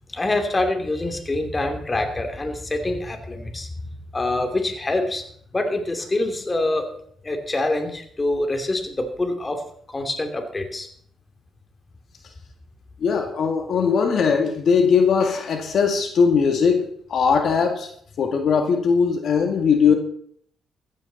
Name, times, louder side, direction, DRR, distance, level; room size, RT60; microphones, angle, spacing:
voice 1, 0.1-3.7 4.1-5.2 5.5-6.9 7.2-9.6 9.9-10.9, left 2 dB, 25° left, 5 dB, 2.8 m, -25 dB
voice 2, 13.0-17.9 18.2-19.9, left 6 dB, 60° left, 4 dB, 2.0 m, -20 dB
15.0 x 14.0 x 4.1 m, 0.62 s
cardioid pair, 90°, 0 cm